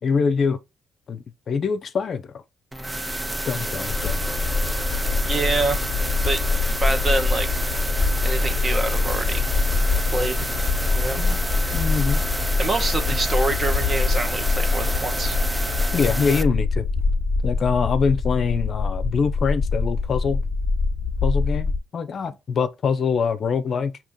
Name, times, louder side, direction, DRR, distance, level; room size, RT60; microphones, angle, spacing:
voice 1, 0.0-0.6 1.1-2.4 3.5-4.3 11.2-11.4 11.7-12.2 15.9-16.9 17.4-20.4 21.2-24.0, left 5 dB, 50° left, 0.5 m, -24 dB
sound 1, 2.7-16.4, right 1 dB, 10° right, 0.4 m, -29 dB
sound 2, 3.9-21.8, left 4 dB, 35° left, 1.1 m, -24 dB
voice 2, 5.2-5.8 6.2-6.5 6.8-7.5 8.2-9.4 10.1-10.4 10.9-11.2 12.6-15.4, right 2 dB, 35° right, 1.0 m, -26 dB
5.3 x 2.8 x 3.5 m
cardioid pair, 90°, 0 cm